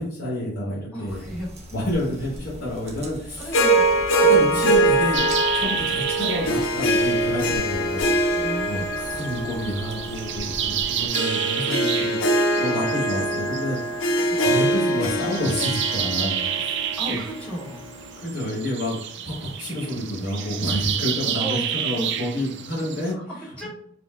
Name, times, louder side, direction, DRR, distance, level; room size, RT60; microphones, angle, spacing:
voice 1, 0.0-1.3 1.7-3.5 4.2-5.3 5.5-14.1 14.4-16.8 17.1-17.2 18.2-23.2, left 1 dB, 55° left, -7 dB, 1.4 m, -29 dB
voice 2, 0.9-1.5 3.4-3.9 8.3-8.9 14.2-14.4 17.0-17.8 21.4-21.6 21.9-22.1 23.1-23.7, equal, 5° left, -4 dB, 1.3 m, -34 dB
sound 1, 1.1-11.1, equal, 35° right, 0.9 m, -41 dB
Harp, 3.5-17.9, right 1 dB, 85° left, 0.6 m, -23 dB
sound 2, 5.1-23.1, right 9 dB, 60° right, 0.4 m, -31 dB
4.9 x 2.1 x 3.6 m, 0.63 s
head